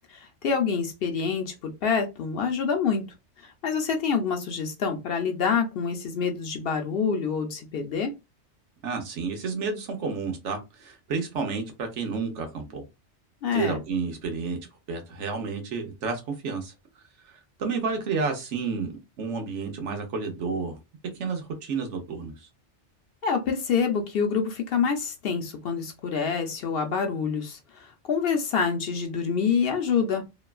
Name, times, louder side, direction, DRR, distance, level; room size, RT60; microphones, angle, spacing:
voice 1, 0.1-3.0 3.4-8.1 13.4-13.8 23.2-30.2, left 6 dB, 60° left, 0.7 m, -27 dB
voice 2, 8.8-12.8 13.5-14.6 14.9-16.7 17.2-20.8 21.2-22.5, right 4 dB, 75° right, 1.1 m, -31 dB
3.0 x 2.2 x 2.3 m
omnidirectional pair, 1.2 m